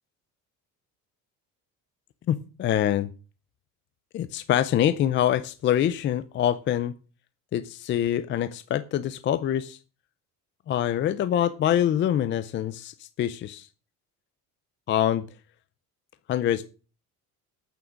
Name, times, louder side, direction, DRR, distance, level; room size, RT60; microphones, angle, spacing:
voice 1, 2.3-3.1 4.1-6.9 7.5-9.8 10.7-13.7 14.9-15.2 16.3-16.6, left 11 dB, 35° left, 13 dB, 0.5 m, -25 dB
9.1 x 8.6 x 6.3 m, 0.35 s
cardioid pair, 175°, 35 cm